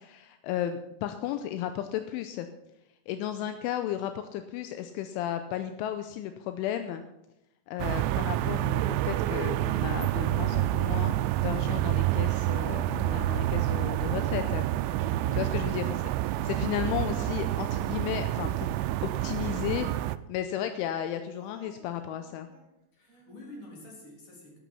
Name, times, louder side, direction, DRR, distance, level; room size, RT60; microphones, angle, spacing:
voice 1, 0.0-2.5 3.1-7.0 7.7-14.6 15.4-15.9 16.2-18.7 19.0-19.9 20.3-22.5, left 11 dB, 85° left, 8 dB, 3.0 m, -34 dB
sound 1, 7.8-20.2, right 15 dB, 90° right, 2.6 m, -28 dB
Singing, 10.9-12.5 12.8-15.2 15.6-18.2 18.8-20.1 20.7-22.7 23.1-23.7, right 6 dB, 60° right, 4.4 m, -56 dB
voice 2, 15.1-15.5 22.9-24.6, left 2 dB, 45° left, -2 dB, 4.8 m, -47 dB
12.5 x 12.0 x 5.5 m, 0.89 s
omnidirectional pair, 5.8 m